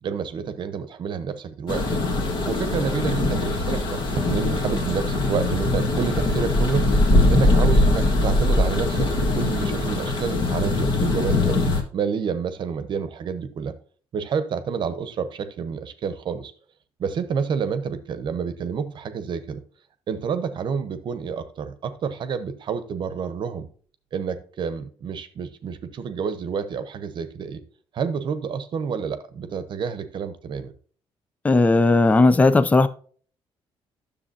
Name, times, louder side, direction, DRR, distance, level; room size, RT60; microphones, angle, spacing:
voice 1, 0.0-2.0 2.4-7.0 7.3-11.6 11.9-13.7 14.1-16.5 17.0-19.6 20.1-23.7 24.1-27.6 27.9-30.7, right 6 dB, 50° right, 0.9 m, -29 dB
sound 1, 1.7-11.8, left 2 dB, 50° left, 1.7 m, -21 dB
voice 2, 31.4-32.9, left 3 dB, 15° left, 0.5 m, -16 dB
10.0 x 6.9 x 2.7 m
cardioid pair, 135°, 10 cm